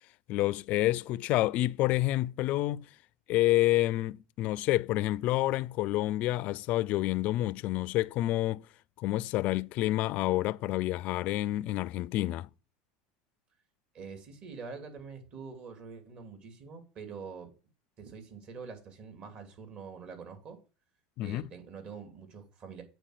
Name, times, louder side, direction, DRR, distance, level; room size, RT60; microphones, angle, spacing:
voice 1, 0.3-2.9 3.3-8.7 9.0-12.5 21.2-21.4, left 16 dB, 55° left, 0.4 m, -28 dB
voice 2, 13.9-17.5 18.0-20.6 21.2-22.8, right 5 dB, 45° right, 2.6 m, -45 dB
8.9 x 4.5 x 6.5 m
hypercardioid pair, 100°, 3 cm